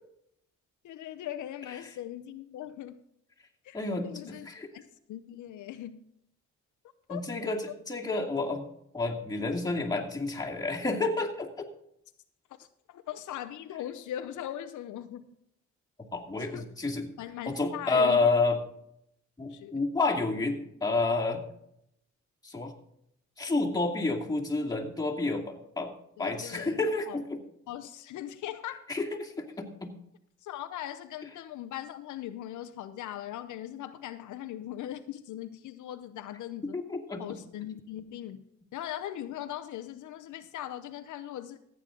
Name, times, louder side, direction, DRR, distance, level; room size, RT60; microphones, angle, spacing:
voice 1, 0.8-3.0 3.6-3.8 4.0-4.5 4.7-4.8 5.1-6.0 7.1-7.2 12.6-15.3 16.4-16.7 17.2-18.3 19.5-19.8 26.2-27.2 27.7-28.8 30.4-36.8 37.2-38.5 38.7-41.6, left 12 dB, 75° left, 0.8 m, -40 dB
voice 2, 3.7-4.7 7.1-8.6 8.9-11.7 16.1-17.1 17.5-18.6 19.4-21.5 22.4-22.7 23.4-25.9 26.2-27.4 28.9-29.9 36.7-37.4, left 3 dB, 15° left, 2.4 m, -30 dB
14.5 x 9.0 x 3.9 m
cardioid pair, 90°, 30 cm